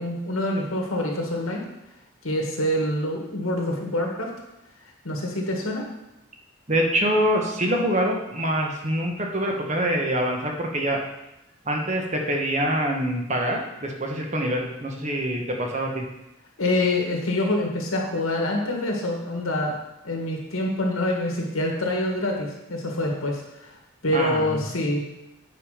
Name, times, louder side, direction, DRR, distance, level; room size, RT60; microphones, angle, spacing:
voice 1, 0.0-1.6 2.2-4.3 5.0-5.9 16.6-19.8 20.0-23.8 24.0-25.1, left 1 dB, 90° left, 0 dB, 1.8 m, -26 dB
voice 2, 6.7-11.0 11.6-16.1 24.1-24.6, right 1 dB, 35° right, 1 dB, 1.2 m, -25 dB
8.4 x 5.1 x 5.1 m, 0.90 s
head